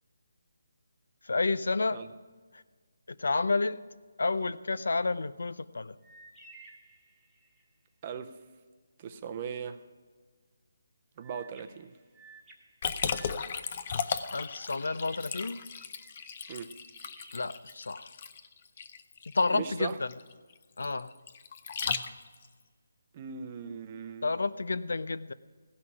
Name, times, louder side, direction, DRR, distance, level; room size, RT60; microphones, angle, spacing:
voice 1, 1.2-2.0 3.2-3.8 4.2-5.9 14.3-15.6 17.3-18.1 19.3-20.1 20.8-21.1 24.2-25.3, left 3 dB, 75° left, 15 dB, 0.6 m, -30 dB
sound 1, 6.0-7.7 11.2-14.4 14.8-18.2, right 2 dB, 5° right, 1.3 m, -56 dB
voice 2, 8.0-8.3 9.0-9.8 11.2-12.0 16.5-16.8 19.5-20.0 23.1-24.3, right 7 dB, 20° right, 9 dB, 0.5 m, -39 dB
Liquid, 12.8-22.5, left 6 dB, 30° left, 0.6 m, -36 dB
16.5 x 5.9 x 9.7 m, 1.5 s
hypercardioid pair, 175°, 0 cm